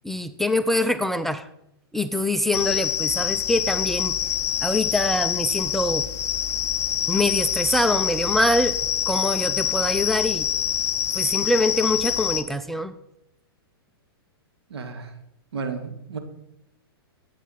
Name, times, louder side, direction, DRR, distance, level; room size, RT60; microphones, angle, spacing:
voice 1, 0.0-1.5 1.9-4.1 4.6-6.0 7.1-8.8 9.1-10.5 11.1-12.9, left 1 dB, ahead, 10 dB, 0.4 m, -24 dB
sound 1, 2.5-12.4, left 9 dB, 20° left, 0.8 m, -26 dB
voice 2, 14.7-15.1 15.5-16.2, right 5 dB, 80° right, 6 dB, 2.2 m, -32 dB
12.5 x 8.5 x 5.6 m, 0.81 s
hypercardioid pair, 135°, 13 cm